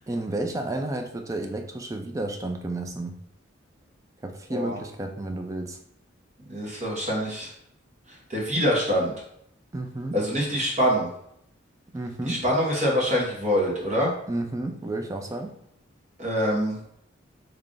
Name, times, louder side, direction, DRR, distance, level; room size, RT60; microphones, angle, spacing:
voice 1, 0.1-3.2 4.2-5.8 9.7-10.2 11.9-12.4 14.3-15.6, right 2 dB, 15° right, 4 dB, 0.4 m, -31 dB
voice 2, 6.5-7.5 8.1-9.1 10.1-11.1 12.2-14.1 16.2-16.8, equal, 35° right, -3 dB, 1.1 m, -25 dB
3.2 x 2.5 x 3.8 m, 0.72 s
head